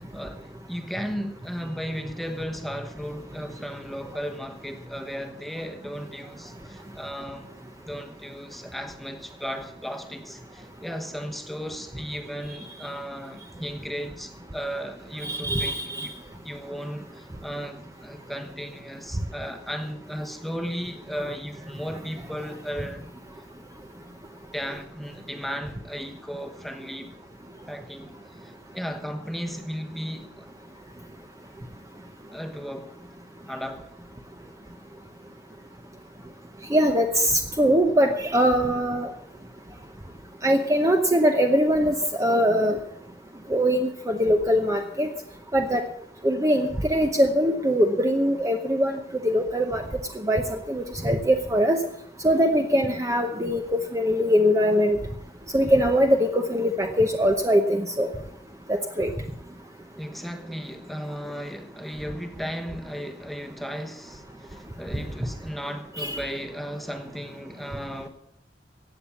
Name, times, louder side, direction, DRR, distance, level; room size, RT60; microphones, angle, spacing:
voice 1, 0.0-7.5 7.9-16.1 16.4-23.1 24.5-27.1 27.7-28.1 28.4-30.5 32.3-32.9 33.5-33.9 60.0-68.1, equal, ahead, 1.2 m, -35 dB
voice 2, 15.2-16.1 36.7-39.1 40.4-42.8 43.5-45.1 45.5-45.9 46.2-49.8 50.1-51.8 52.2-55.0 55.5-58.1 58.7-59.1 66.0-66.2, equal, 20° right, 0.8 m, -22 dB
15.5 x 8.7 x 7.2 m
head